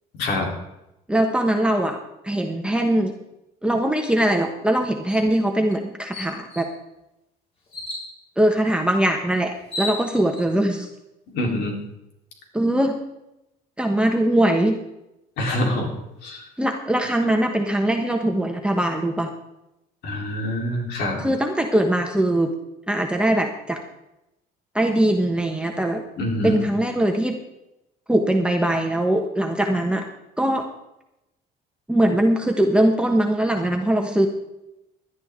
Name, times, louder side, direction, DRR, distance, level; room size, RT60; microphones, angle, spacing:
voice 1, 1.1-3.1 3.6-6.7 8.4-10.9 12.5-13.0 13.8-14.8 16.6-19.3 21.2-22.5 22.9-23.8 24.7-26.0 26.4-27.4 28.1-30.0 30.4-30.7 31.9-34.3, right 1 dB, 5° right, 3 dB, 1.3 m, -21 dB
sound 1, 5.1-5.3 5.7-5.8 6.1-6.7 7.7-8.1 9.2-9.3 9.6-10.4, left 1 dB, 35° left, 5.7 m, -33 dB
voice 2, 11.3-11.7 15.4-15.9 16.2-16.4 20.0-21.2 26.2-26.6, left 1 dB, 80° left, 0 dB, 3.9 m, -25 dB
17.5 x 11.0 x 3.8 m, 0.89 s
cardioid pair, 110°, 17 cm